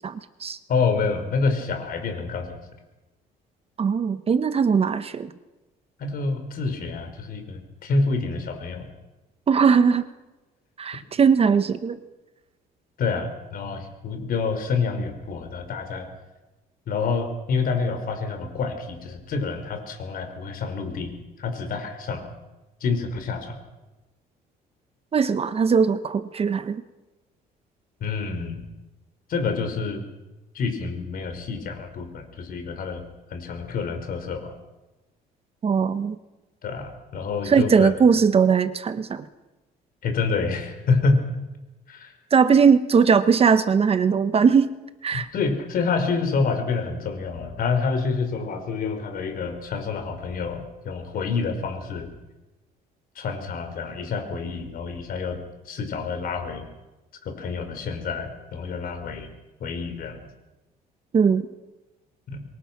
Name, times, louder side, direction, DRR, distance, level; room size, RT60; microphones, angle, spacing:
voice 1, 0.0-0.6 3.8-5.3 9.5-10.0 10.8-12.0 25.1-26.8 35.6-36.2 37.5-39.2 42.3-44.7 45.0-45.3 61.1-61.4, right 6 dB, 35° right, 11 dB, 1.2 m, -19 dB
voice 2, 0.7-2.6 6.0-8.9 13.0-16.1 16.9-22.3 22.8-23.6 28.0-28.7 29.3-30.0 30.5-33.0 33.3-34.5 36.6-37.9 40.0-41.2 41.9-42.1 45.1-52.1 53.1-56.7 57.2-59.3 59.6-60.3 62.3-62.4, left 4 dB, 60° left, 6 dB, 5.0 m, -27 dB
26.5 x 23.0 x 6.1 m, 1.1 s
cardioid pair, 110°, 17 cm